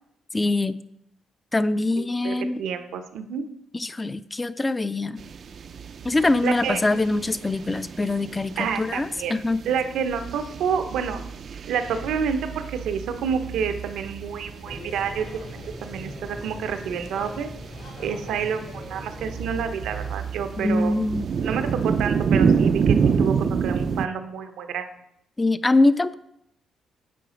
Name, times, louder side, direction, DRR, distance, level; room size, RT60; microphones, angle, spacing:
voice 1, 0.3-0.8 1.5-2.6 3.7-5.2 6.0-9.6 20.6-21.3 25.4-26.2, left 2 dB, 20° left, 15 dB, 0.3 m, -23 dB
voice 2, 2.0-3.5 6.4-6.9 8.6-9.4 9.6-11.2 11.7-17.5 18.0-20.9 21.4-24.9, right 7 dB, 80° right, 8 dB, 0.7 m, -29 dB
sound 1, 5.2-24.1, right 6 dB, 50° right, 0.3 m, -29 dB
sound 2, 14.6-20.1, left 1 dB, 85° left, 1.9 m, -40 dB
7.7 x 4.0 x 5.0 m, 0.77 s
cardioid pair, 90°, 0 cm